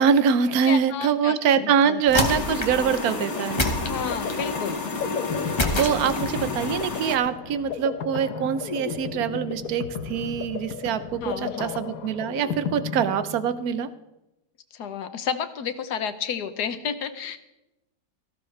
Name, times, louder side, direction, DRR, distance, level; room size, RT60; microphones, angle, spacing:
voice 1, 0.0-3.6 5.4-13.9, right 7 dB, 70° right, 12 dB, 1.2 m, -24 dB
voice 2, 0.6-2.0 3.9-4.9 11.2-11.8 14.7-17.4, left 7 dB, 85° left, 10 dB, 1.5 m, -31 dB
sound 1, 2.1-2.9 3.6-4.5 5.6-6.5, left 1 dB, 20° left, 1.3 m, -27 dB
sound 2, 2.2-7.2, left 3 dB, 45° left, 1.9 m, -31 dB
sound 3, 2.9-13.8, left 7 dB, 65° left, 1.3 m, -34 dB
17.5 x 15.0 x 3.3 m, 0.93 s
omnidirectional pair, 1.7 m